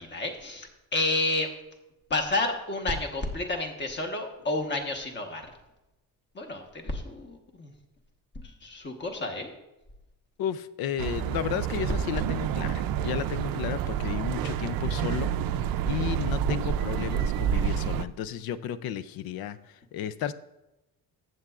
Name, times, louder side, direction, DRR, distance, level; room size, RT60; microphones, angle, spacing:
voice 1, 0.0-1.5 2.1-5.5 6.3-7.7 8.6-9.5 17.1-17.2, left 2 dB, 30° left, 4 dB, 1.2 m, -30 dB
voice 2, 10.4-15.3 15.8-20.3, left 9 dB, 80° left, 14 dB, 0.6 m, -33 dB
sound 1, 11.0-18.0, right 9 dB, 70° right, 0.5 m, -29 dB
14.5 x 7.8 x 2.4 m, 0.96 s
cardioid pair, 155°, 36 cm